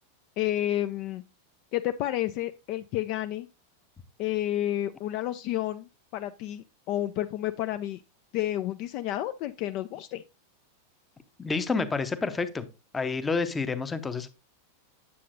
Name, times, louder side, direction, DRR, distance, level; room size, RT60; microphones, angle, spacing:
voice 1, 0.4-1.2 1.7-3.5 4.2-8.0 8.3-10.2, left 13 dB, 45° left, 10 dB, 0.3 m, -30 dB
voice 2, 11.4-12.6 12.9-14.3, left 4 dB, 15° left, 11 dB, 0.7 m, -29 dB
8.4 x 7.3 x 2.5 m, 0.28 s
figure-of-eight pair, 90°, 0 cm